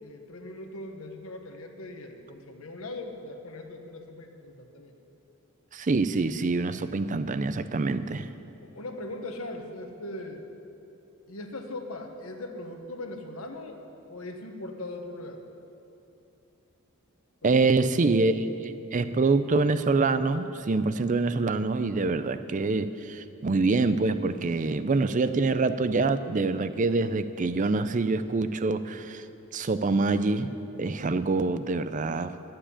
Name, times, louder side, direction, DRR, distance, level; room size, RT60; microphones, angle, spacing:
voice 1, 0.0-4.9 8.6-10.5 11.3-13.8 14.1-15.4 17.4-17.9, left 2 dB, 75° left, 4 dB, 1.3 m, -40 dB
voice 2, 5.7-8.3 17.4-29.2 29.5-30.5 30.8-32.3, right 3 dB, 35° right, 12 dB, 0.5 m, -25 dB
11.0 x 7.6 x 9.9 m, 2.8 s
head